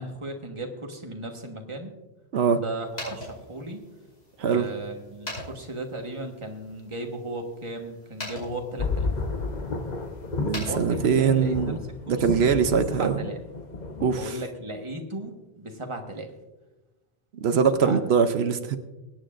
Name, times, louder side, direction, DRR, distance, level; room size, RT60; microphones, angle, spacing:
voice 1, 0.0-1.9 2.5-3.8 4.4-9.1 10.6-11.7 12.1-12.5 12.9-13.4 14.1-16.3 17.8-18.0, right 2 dB, 30° right, 3 dB, 1.4 m, -36 dB
sound 1, 2.8-11.5, left 1 dB, 80° left, 5.7 m, -43 dB
sound 2, 8.8-14.1, left 3 dB, 45° left, 1.0 m, -31 dB
voice 2, 10.4-11.8 12.1-13.2 14.0-14.4 17.4-18.8, right 6 dB, 85° right, 9 dB, 1.0 m, -22 dB
23.5 x 9.5 x 2.5 m, 1.1 s
omnidirectional pair, 1.1 m